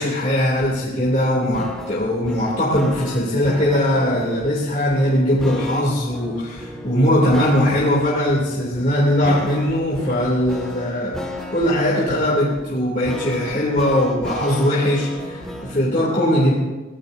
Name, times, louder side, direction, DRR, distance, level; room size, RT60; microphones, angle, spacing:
voice 1, 0.0-11.2 11.5-16.5, left 1 dB, 35° left, -6 dB, 3.0 m, -20 dB
sound 1, 0.6-15.9, left 1 dB, 5° left, 2.0 m, -34 dB
23.5 x 17.5 x 2.8 m, 1.2 s
head